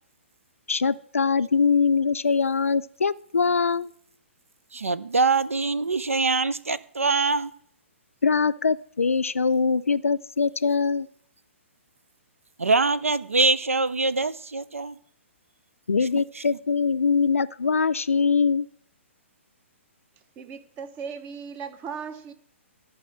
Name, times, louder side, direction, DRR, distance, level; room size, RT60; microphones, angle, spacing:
voice 1, 0.7-3.9 8.2-11.1 15.9-18.7, left 5 dB, 85° left, 16 dB, 0.4 m, -23 dB
voice 2, 4.7-7.5 12.6-15.0 16.1-16.4, right 3 dB, 90° right, 17 dB, 0.6 m, -24 dB
voice 3, 20.4-22.3, right 6 dB, 25° right, 12 dB, 0.8 m, -37 dB
13.5 x 4.7 x 6.2 m, 0.67 s
figure-of-eight pair, 130°, 7 cm